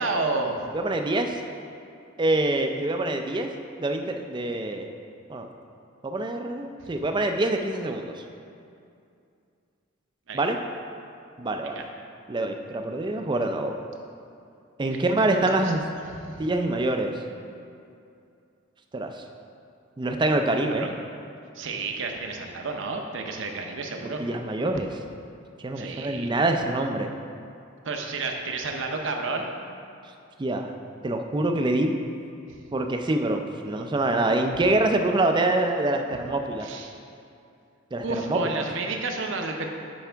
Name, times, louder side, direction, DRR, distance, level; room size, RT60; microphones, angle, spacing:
voice 1, 0.0-0.6 6.8-6.9 10.3-10.4 11.6-11.9 14.9-15.7 16.2-16.4 20.8-20.9 21.5-24.2 25.8-26.3 27.8-29.5 32.5-32.6 34.2-34.3 36.6-36.9 38.0-39.7, right 3 dB, 60° right, 3 dB, 0.7 m, -31 dB
voice 2, 0.7-1.4 2.2-3.5 3.8-4.9 5.3-5.5 6.0-8.2 10.3-10.6 11.4-11.8 12.3-13.7 14.8-15.8 16.4-17.2 18.9-19.2 20.0-20.9 24.0-24.9 25.6-27.1 30.4-30.7 31.0-32.0 32.7-36.7 37.9-38.6, right 2 dB, 20° right, 5 dB, 0.4 m, -25 dB
10.5 x 4.7 x 3.4 m, 2.5 s
head